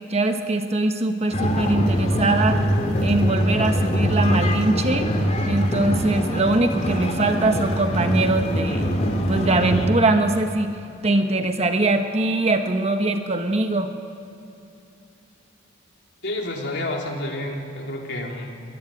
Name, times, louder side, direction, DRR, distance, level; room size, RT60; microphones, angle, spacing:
voice 1, 0.0-2.6 3.0-5.2 5.5-8.9 9.3-10.7 11.0-13.9, right 2 dB, 30° right, 6 dB, 1.2 m, -22 dB
sound 1, 1.3-9.9, equal, 35° left, 2.8 m, -23 dB
voice 2, 16.2-18.6, left 1 dB, 55° left, 0 dB, 3.5 m, -29 dB
22.0 x 17.0 x 9.9 m, 2.7 s
head